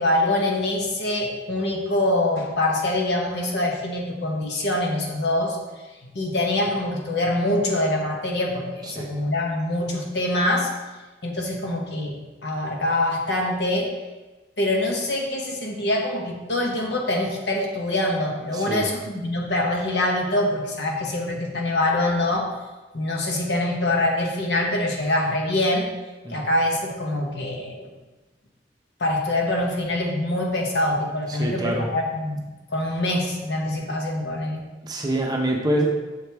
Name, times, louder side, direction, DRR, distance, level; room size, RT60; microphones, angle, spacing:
voice 1, 0.0-5.6 6.0-10.7 11.2-13.9 14.6-22.5 22.9-25.9 26.3-27.9 29.0-32.4 32.7-34.6, left 1 dB, 75° left, 0 dB, 1.1 m, -24 dB
voice 2, 18.5-18.9 26.2-26.4 31.3-31.9 34.8-35.9, right 1 dB, 20° right, 0 dB, 0.7 m, -25 dB
6.7 x 4.7 x 3.4 m, 1.2 s
head